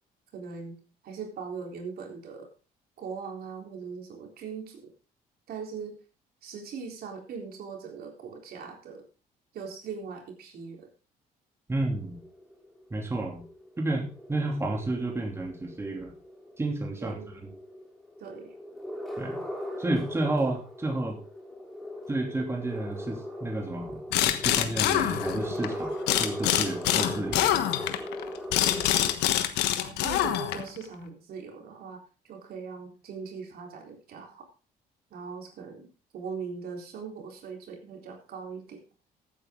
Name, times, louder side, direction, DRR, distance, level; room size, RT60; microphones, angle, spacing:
voice 1, 0.3-2.5 3.0-4.9 5.5-6.0 6.4-9.0 9.5-10.9 17.0-17.3 18.2-18.5 29.8-34.4 35.1-35.9 36.1-38.8, right 5 dB, 65° right, 2 dB, 3.8 m, -40 dB
voice 2, 11.7-12.2 12.9-13.4 13.8-16.1 16.6-17.2 19.2-19.4 19.8-21.2 22.1-27.6, right 2 dB, 15° right, 1 dB, 2.8 m, -31 dB
sound 1, 11.8-29.1, left 1 dB, ahead, 3.1 m, -39 dB
sound 2, 24.1-25.7 26.1-30.8, left 12 dB, 85° left, 1.3 m, -25 dB
15.0 x 8.8 x 3.8 m, 0.35 s
cardioid pair, 110°, 17 cm